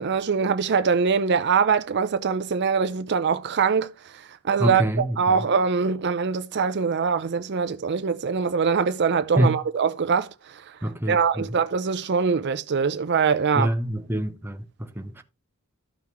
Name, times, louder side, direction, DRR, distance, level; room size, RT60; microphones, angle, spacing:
voice 1, 0.0-10.6 11.1-13.7, right 5 dB, 50° right, 0.5 m, -23 dB
voice 2, 4.6-5.5 9.4-9.6 10.8-11.5 13.5-15.2, equal, 10° right, 0.8 m, -26 dB
13.5 x 5.8 x 3.0 m
head